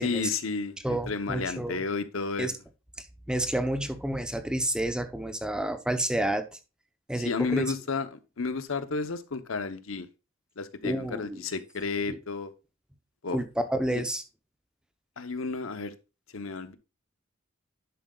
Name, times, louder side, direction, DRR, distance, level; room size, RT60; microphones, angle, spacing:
voice 1, 0.0-2.5 7.2-10.1 10.6-12.5 13.2-13.4 13.9-14.0 15.2-15.9 16.3-16.8, left 4 dB, 80° left, 11 dB, 0.9 m, -32 dB
voice 2, 0.8-1.8 2.4-2.5 3.3-6.6 7.1-7.7 10.8-11.4 12.1-12.2 13.3-14.2, right 1 dB, 5° right, 8 dB, 0.7 m, -30 dB
10.5 x 7.6 x 2.3 m, 0.29 s
head